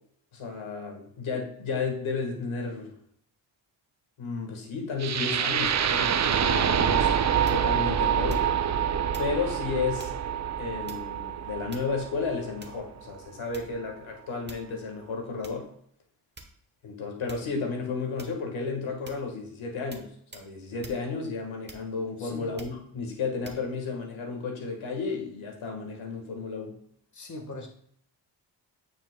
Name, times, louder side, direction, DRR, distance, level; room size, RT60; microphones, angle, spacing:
voice 1, 0.3-2.9 4.2-8.4 9.2-10.1 10.6-15.7 16.8-26.7, left 4 dB, 90° left, 1 dB, 1.6 m, -33 dB
sound 1, 5.0-13.0, right 8 dB, 40° right, 0.4 m, -26 dB
sound 2, 7.4-7.8 8.3-8.7 9.1-9.4 10.0-10.2 10.9-11.2 11.7-12.1 12.6-12.9 13.5-13.9 14.5-14.8 15.4-15.6 16.4-16.8 17.3-17.5 18.2-18.5 19.1-19.3 19.9-20.1 20.3-20.5 20.8-21.0 21.7-22.1 22.6-22.8 23.4-23.6, right 2 dB, 20° right, 1.0 m, -47 dB
voice 2, 22.2-22.5 27.1-27.7, left 2 dB, 40° left, 2 dB, 1.4 m, -40 dB
8.9 x 5.1 x 2.2 m, 0.65 s
cardioid pair, 70°, 46 cm